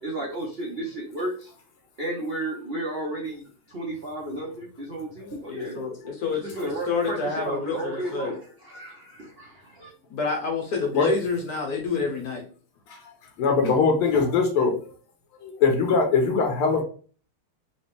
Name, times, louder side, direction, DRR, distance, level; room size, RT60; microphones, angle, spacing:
voice 1, 0.0-1.5 2.0-5.8 6.4-9.9, right 1 dB, 60° right, -4 dB, 0.6 m, -33 dB
voice 2, 5.5-8.3 10.1-12.4, left 4 dB, 60° left, 1 dB, 1.0 m, -28 dB
voice 3, 13.4-14.8 15.4-16.8, left 4 dB, 85° left, 3 dB, 1.7 m, -21 dB
4.1 x 2.9 x 3.3 m, 0.41 s
omnidirectional pair, 2.4 m